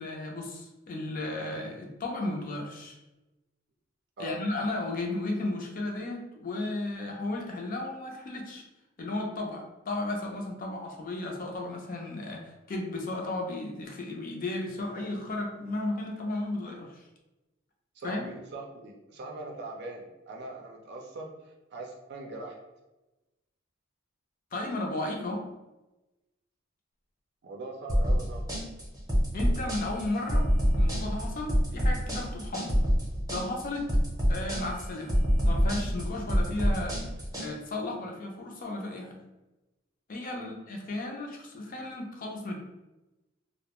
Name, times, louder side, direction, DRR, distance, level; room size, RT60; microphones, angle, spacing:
voice 1, 0.0-3.0 4.2-8.6 9.0-17.0 18.0-18.3 24.5-25.4 29.3-30.5 30.8-32.7 33.3-33.9 34.3-35.1 35.5-37.0 37.4-39.2 40.1-42.6, left 2 dB, 45° left, 1 dB, 0.5 m, -34 dB
voice 2, 17.9-22.6 27.4-28.5 40.3-40.5, right 2 dB, 55° right, 1 dB, 0.5 m, -41 dB
sound 1, 27.9-37.5, equal, 20° right, 0.7 m, -26 dB
2.3 x 2.1 x 2.9 m, 1.0 s
head